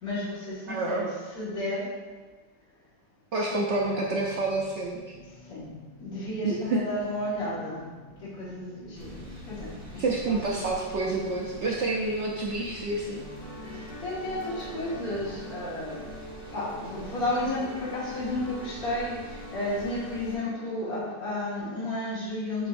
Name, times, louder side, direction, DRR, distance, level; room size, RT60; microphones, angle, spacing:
voice 1, 0.0-1.9 3.3-3.6 5.3-5.7 6.0-7.8 8.2-10.6 13.7-16.0 16.5-22.7, left 1 dB, 50° left, -10 dB, 2.2 m, -33 dB
voice 2, 0.7-1.1 3.3-5.2 6.4-6.8 10.0-13.2, right 2 dB, 85° right, -2 dB, 0.6 m, -28 dB
sound 1, 3.6-18.0, left 1 dB, 90° left, 1.7 m, -47 dB
sound 2, 8.9-20.4, right 1 dB, 35° right, 1.4 m, -47 dB
sound 3, 13.2-21.1, left 1 dB, 70° left, 2.3 m, -45 dB
7.6 x 5.2 x 2.6 m, 1.4 s
omnidirectional pair, 1.9 m